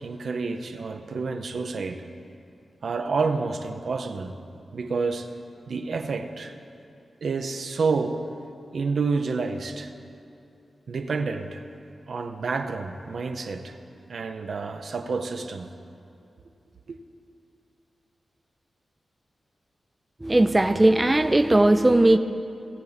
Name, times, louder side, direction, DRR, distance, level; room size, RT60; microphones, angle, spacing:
voice 1, 0.0-2.0 2.8-4.4 4.7-5.3 5.7-6.5 7.2-8.3 8.7-9.9 10.9-11.6 12.1-13.7 14.1-15.7 16.9-17.0, right 4 dB, 75° right, 6 dB, 0.7 m, -29 dB
voice 2, 20.2-22.2, right 1 dB, 20° right, 9 dB, 0.4 m, -18 dB
18.5 x 7.1 x 4.1 m, 2.6 s
cardioid pair, 70°, 0 cm